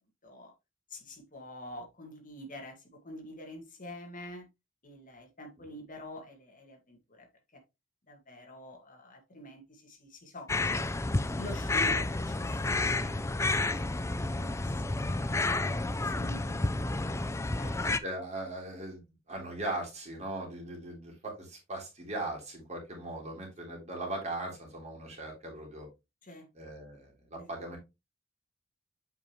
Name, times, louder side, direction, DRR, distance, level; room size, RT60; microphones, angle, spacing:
voice 1, 0.2-0.5 0.9-4.5 4.8-7.3 7.5-7.6 8.1-10.8 11.3-15.1 15.4-17.2 17.5-17.8 26.2-26.5 27.4-27.5, left 1 dB, 40° left, 2.1 m, -47 dB
sound 1, 10.5-18.0, left 2 dB, 15° left, 0.4 m, -30 dB
voice 2, 17.8-25.9 26.5-27.8, right 2 dB, 35° right, 3.4 m, -39 dB
8.1 x 5.2 x 3.1 m
head